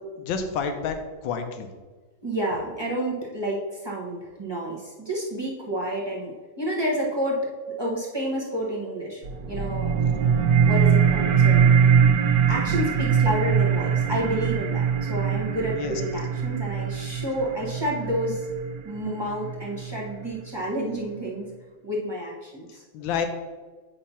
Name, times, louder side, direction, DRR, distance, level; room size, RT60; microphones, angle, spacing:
voice 1, 0.2-1.0 1.2-1.7 15.7-15.9 22.9-23.3, left 6 dB, 75° left, 6 dB, 1.5 m, -28 dB
voice 2, 2.2-7.5 7.8-10.2 10.7-11.9 12.5-18.5 18.8-21.5 21.8-22.8, equal, 25° right, -5 dB, 0.6 m, -30 dB
sound 1, 9.2-20.2, right 7 dB, 65° right, 1.1 m, -22 dB
8.5 x 2.9 x 5.6 m, 1.3 s
omnidirectional pair, 2.1 m